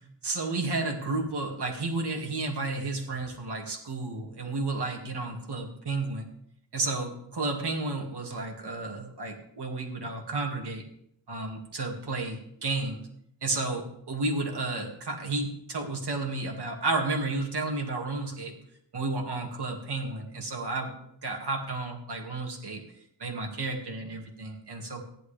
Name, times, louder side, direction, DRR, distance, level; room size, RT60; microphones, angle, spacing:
voice 1, 0.2-6.3 6.7-10.8 11.3-13.0 13.4-18.5 18.9-20.9 21.2-22.8 23.2-25.0, right 3 dB, 60° right, 1 dB, 2.3 m, -32 dB
14.5 x 11.0 x 3.4 m, 0.72 s
wide cardioid pair, 170°, 44 cm